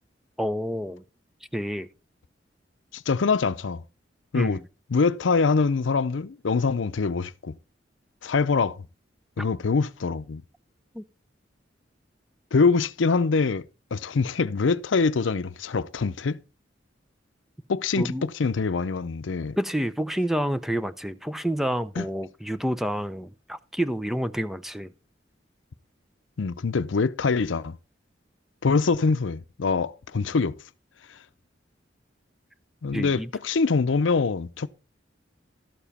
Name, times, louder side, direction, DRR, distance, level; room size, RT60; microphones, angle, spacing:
voice 1, 0.4-1.0 1.5-1.9 4.3-4.6 10.9-11.0 18.0-18.3 19.6-24.9 32.9-33.3, equal, ahead, 0.5 m, -28 dB
voice 2, 2.9-3.8 4.3-4.6 4.9-7.5 8.2-8.8 9.4-10.4 12.5-13.6 13.9-16.4 17.7-19.6 22.0-22.1 26.4-27.8 28.6-30.5 32.8-34.7, left 4 dB, 85° left, 0.6 m, -24 dB
12.5 x 7.1 x 4.2 m
head